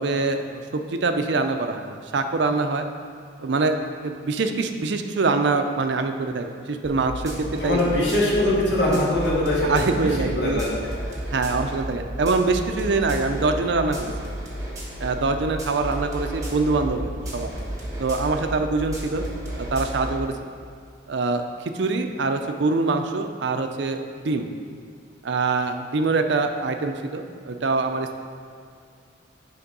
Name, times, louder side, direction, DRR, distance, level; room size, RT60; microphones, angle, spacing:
voice 1, 0.0-2.9 3.4-7.8 8.9-9.0 9.6-10.6 11.3-14.1 15.0-17.5 18.0-19.3 19.6-20.5 21.1-24.5 25.2-28.2, right 3 dB, 65° right, 6 dB, 0.5 m, -24 dB
sound 1, 6.8-20.2, right 1 dB, 15° right, 1.2 m, -33 dB
voice 2, 7.6-10.1 10.4-10.7, left 1 dB, 65° left, -5 dB, 1.8 m, -22 dB
8.4 x 3.6 x 5.3 m, 2.3 s
head